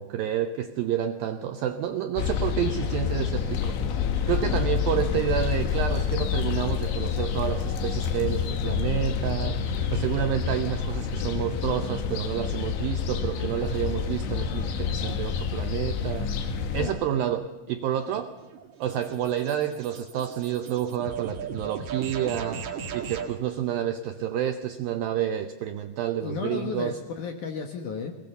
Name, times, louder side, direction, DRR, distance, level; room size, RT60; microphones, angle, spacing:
voice 1, 0.0-3.8 4.2-18.3 18.8-27.0, right 10 dB, 80° right, 7 dB, 2.1 m, -29 dB
sound 1, 2.2-16.9, left 7 dB, 85° left, 4.0 m, -28 dB
sound 2, 17.9-23.4, right 6 dB, 55° right, 2.3 m, -37 dB
voice 2, 26.2-28.2, left 5 dB, 65° left, 4 dB, 2.1 m, -33 dB
22.0 x 19.5 x 6.9 m, 1.1 s
omnidirectional pair, 5.2 m